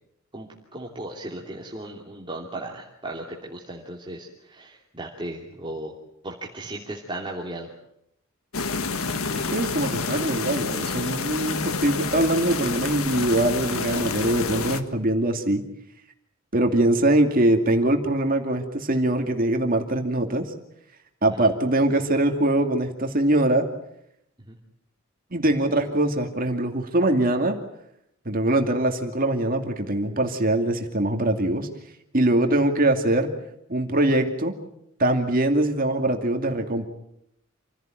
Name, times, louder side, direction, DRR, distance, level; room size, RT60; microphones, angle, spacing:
voice 1, 0.3-5.9 6.2-7.7 21.4-21.5 24.5-24.6, right 1 dB, 25° right, -2 dB, 2.9 m, -36 dB
sound 1, 8.5-14.8, left 4 dB, 90° left, 1.7 m, -28 dB
voice 2, 9.5-15.6 16.5-20.5 21.2-23.7 25.3-27.6 28.3-31.7 32.1-33.3 33.7-34.6 35.0-36.9, right 1 dB, 40° right, 4 dB, 2.5 m, -22 dB
28.0 x 16.5 x 9.2 m, 0.77 s
head